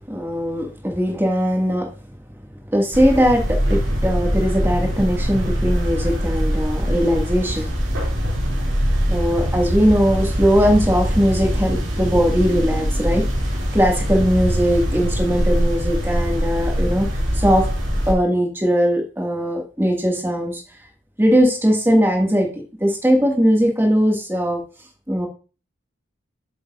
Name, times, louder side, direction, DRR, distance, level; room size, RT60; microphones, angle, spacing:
voice 1, 0.1-1.9 2.7-7.7 9.1-13.4 13.7-17.1 17.3-17.7 18.1-20.6 21.2-24.6 25.1-25.3, equal, 10° right, 1 dB, 1.8 m, -19 dB
sound 1, 2.9-18.1, equal, 80° right, 2.6 m, -22 dB
8.0 x 6.9 x 2.4 m, 0.35 s
head